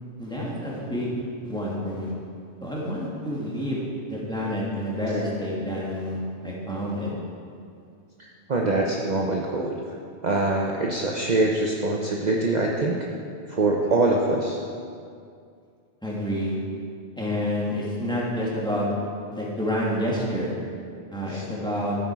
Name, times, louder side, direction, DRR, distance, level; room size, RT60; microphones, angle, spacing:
voice 1, 0.2-1.1 1.4-2.1 2.6-3.8 4.1-7.1 16.0-16.6 17.2-18.9 19.3-20.5 21.1-22.0, equal, 5° left, -6 dB, 2.4 m, -28 dB
voice 2, 8.2-9.8 10.2-13.0 13.5-14.6 21.3-21.4, right 2 dB, 45° right, -1 dB, 0.9 m, -24 dB
14.0 x 8.6 x 4.8 m, 2.4 s
omnidirectional pair, 1.1 m